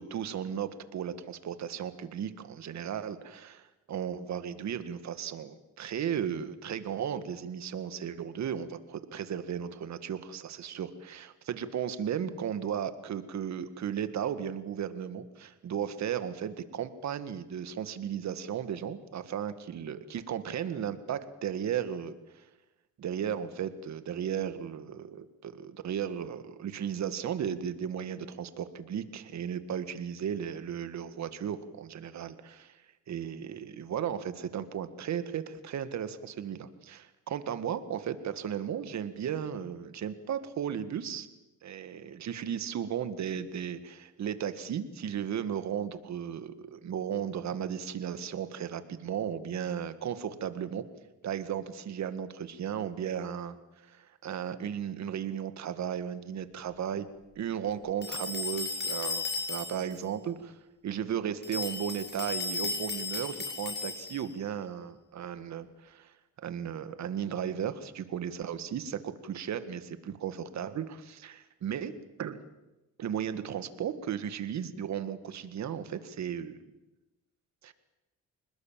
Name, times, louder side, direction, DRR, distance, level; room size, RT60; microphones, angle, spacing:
voice 1, 0.0-22.4 23.0-32.8 33.1-41.3 41.6-50.8 51.2-53.6 53.8-57.1 57.4-60.6 60.8-71.9 72.2-72.4 73.0-76.6 77.6-77.7, right 8 dB, 65° right, 11 dB, 1.9 m, -35 dB
sound 1, 58.0-60.0 61.4-64.3, left 4 dB, 35° left, 6.4 m, -35 dB
27.0 x 20.0 x 7.6 m, 1.0 s
cardioid pair, 90°, 30 cm